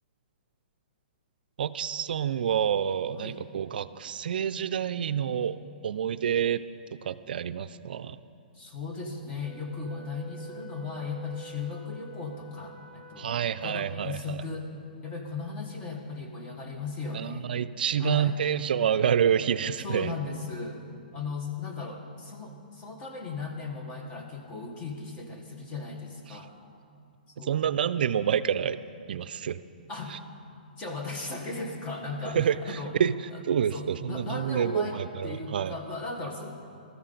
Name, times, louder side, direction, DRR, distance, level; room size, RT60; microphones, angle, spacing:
voice 1, 1.6-5.6 5.8-6.6 7.0-8.2 13.2-14.4 17.1-20.1 26.3-26.4 27.4-28.8 29.1-29.6 30.1-30.2 32.3-33.1 33.5-35.8, right 8 dB, 70° right, 13 dB, 0.4 m, -28 dB
voice 2, 8.5-14.7 15.0-17.5 18.0-18.4 19.8-20.8 21.1-26.5 27.3-27.7 29.9-30.2 30.8-33.0 33.3-33.4 33.7-36.5, left 4 dB, 20° left, 2 dB, 1.3 m, -37 dB
Wind instrument woodwind instrument, 9.4-14.0, right 6 dB, 5° right, 2.0 m, -47 dB
14.5 x 13.5 x 3.9 m, 2.4 s
hypercardioid pair, 150°, 5 cm